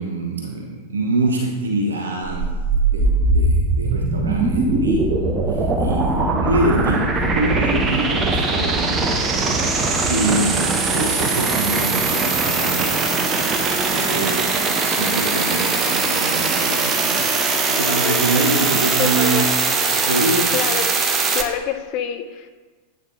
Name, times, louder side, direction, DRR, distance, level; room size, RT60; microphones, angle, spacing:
voice 1, 0.0-2.5 2.8-9.6 10.0-13.0 13.9-17.3 17.6-19.6 19.9-20.6, right 2 dB, 70° right, 1 dB, 0.7 m, -25 dB
sound 1, 2.3-21.4, right 3 dB, 25° right, 0.8 m, -20 dB
voice 2, 17.8-18.4 19.0-19.6 20.5-20.9 21.3-22.5, left 9 dB, 40° left, 7 dB, 0.6 m, -27 dB
9.9 x 8.5 x 2.4 m, 1.3 s
figure-of-eight pair, 90°, 0 cm